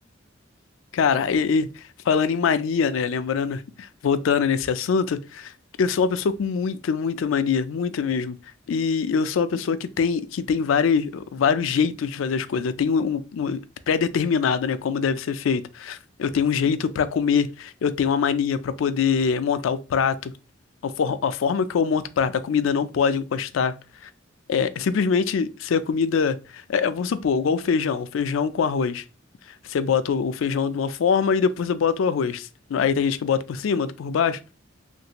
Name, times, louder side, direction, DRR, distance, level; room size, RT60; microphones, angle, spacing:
voice 1, 0.9-1.7 2.1-5.5 5.8-8.4 8.7-13.6 13.9-20.3 20.8-23.7 24.5-29.0 29.7-34.5, left 6 dB, 85° left, 0.4 m, -23 dB
3.2 x 2.6 x 2.8 m
head